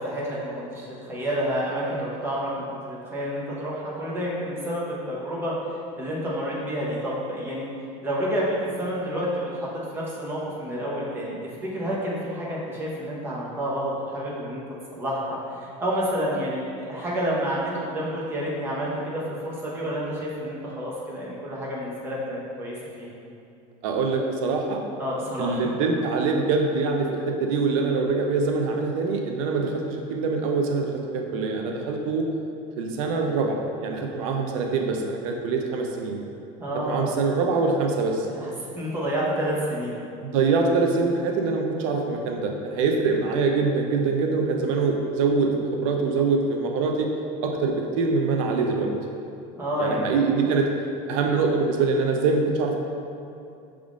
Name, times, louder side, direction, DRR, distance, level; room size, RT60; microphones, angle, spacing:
voice 1, 0.0-5.5 6.0-7.7 8.0-11.4 11.7-14.6 14.9-23.1 25.0-25.7 36.6-37.1 38.3-40.0 49.6-50.1, equal, 15° right, -6 dB, 0.7 m, -29 dB
voice 2, 23.8-24.8 25.4-32.2 32.8-36.2 36.8-38.3 40.2-47.1 47.4-48.9 49.8-50.7 51.1-52.8, right 4 dB, 75° right, 2 dB, 0.5 m, -24 dB
6.1 x 3.5 x 2.4 m, 2.6 s
cardioid pair, 170°, 17 cm